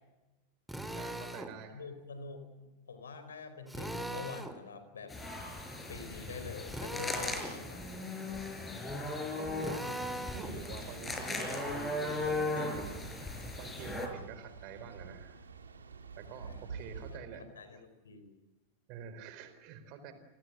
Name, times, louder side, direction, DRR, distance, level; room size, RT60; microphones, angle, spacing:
Drill, 0.7-1.5 3.7-4.6 6.7-7.6 9.6-10.6, right 1 dB, ahead, 2.4 m, -40 dB
voice 1, 1.0-1.9 9.4-9.9 10.3-13.1 13.6-15.4 16.2-17.5 18.9-20.1, right 6 dB, 40° right, 10 dB, 4.3 m, -46 dB
voice 2, 1.7-5.1 5.9-7.9 9.5-9.9 16.3-16.7 17.1-18.3, left 4 dB, 70° left, 10 dB, 4.4 m, -46 dB
sound 1, 5.1-14.1, left 2 dB, 15° left, 5.3 m, -38 dB
sound 2, 9.9-17.2, right 5 dB, 70° right, 2.7 m, -49 dB
29.5 x 19.5 x 8.0 m, 1.1 s
figure-of-eight pair, 90°, 0 cm